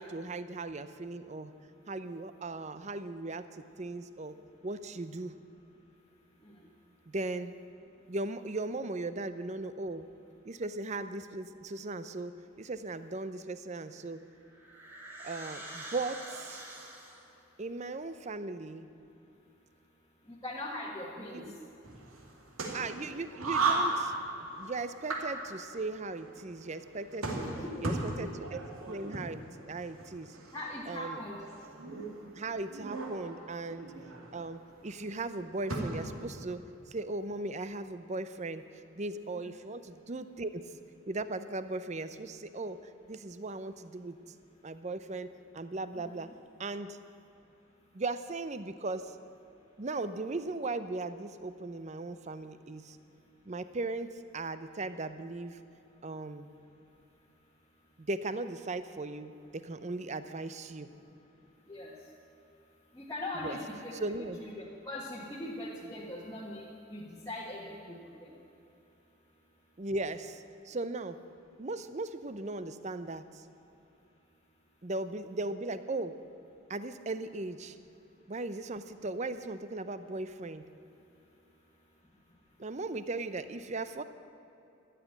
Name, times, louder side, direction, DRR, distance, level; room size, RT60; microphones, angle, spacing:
voice 1, 0.0-1.5 1.9-4.4 4.6-5.3 7.1-7.5 8.1-10.1 10.5-14.2 15.2-16.6 17.6-18.9 21.2-21.6 22.7-24.1 24.6-27.5 27.8-29.4 29.7-30.4 30.9-31.2 32.3-33.9 34.3-40.6 41.1-44.2 44.6-46.3 46.6-47.0 47.9-49.1 49.8-53.0 53.5-55.6 56.0-56.5 58.0-60.9 63.4-63.6 63.9-64.4 69.8-71.2 71.6-73.4 74.8-76.2 76.7-77.8 78.3-80.6 82.6-84.0, right 2 dB, 35° right, 12 dB, 0.6 m, -38 dB
sound 1, 14.0-17.4, right 1 dB, 10° right, 2.0 m, -46 dB
voice 2, 20.3-21.4 27.3-28.4 30.5-31.4 39.3-39.5 45.9-46.1 61.7-61.9 62.9-64.0 64.4-66.6 66.9-68.3 83.3-83.4, left 1 dB, 15° left, -6 dB, 1.4 m, -41 dB
sound 2, 21.8-36.3, right 3 dB, 85° right, 2.4 m, -37 dB
13.5 x 8.1 x 10.0 m, 2.8 s
head